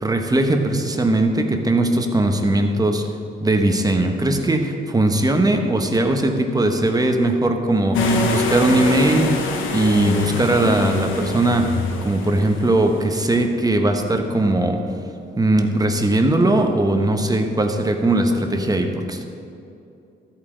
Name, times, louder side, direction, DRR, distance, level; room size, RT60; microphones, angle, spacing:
voice 1, 0.0-3.1 3.4-14.8 15.4-19.2, right 1 dB, 20° right, 4 dB, 1.1 m, -19 dB
sound 1, 7.9-13.4, left 2 dB, 80° left, 1.2 m, -24 dB
13.5 x 8.8 x 3.9 m, 2.7 s
cardioid pair, 90°, 20 cm